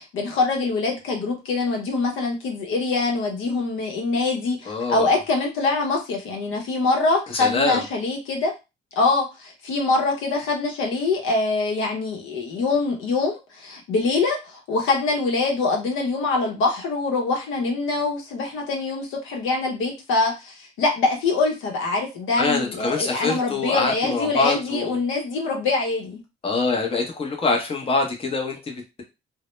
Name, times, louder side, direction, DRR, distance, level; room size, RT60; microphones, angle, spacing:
voice 1, 0.0-8.5 9.0-26.2, left 3 dB, 85° left, 1 dB, 0.8 m, -24 dB
voice 2, 4.7-5.1 7.3-7.8 22.4-25.0 26.4-29.0, left 3 dB, 30° left, 2 dB, 0.7 m, -24 dB
2.1 x 2.1 x 3.0 m, 0.26 s
cardioid pair, 90°, 20 cm